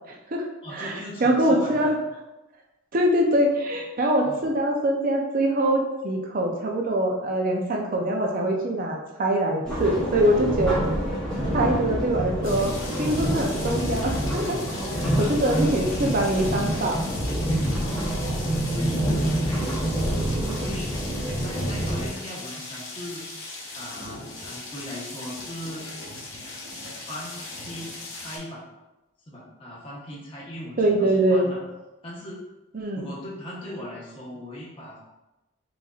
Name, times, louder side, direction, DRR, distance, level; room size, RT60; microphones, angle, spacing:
voice 1, 0.1-0.5 0.7-1.9 2.9-10.8 11.5-12.7 13.0-14.6 15.2-17.0 30.8-31.5 32.7-33.1, right 1 dB, 45° right, 0 dB, 0.5 m, -23 dB
voice 2, 0.6-2.0 4.2-4.4 11.3-11.7 14.7-15.9 17.8-19.9 20.6-21.0 21.4-23.2 23.7-25.8 27.1-28.6 29.3-31.6 32.0-32.4 33.0-35.0, equal, 25° left, -6 dB, 1.1 m, -38 dB
sound 1, 9.6-22.1, right 1 dB, 5° left, 0.9 m, -27 dB
sound 2, 12.4-28.4, left 2 dB, 80° left, 1.2 m, -39 dB
6.0 x 2.6 x 2.4 m, 1.0 s
head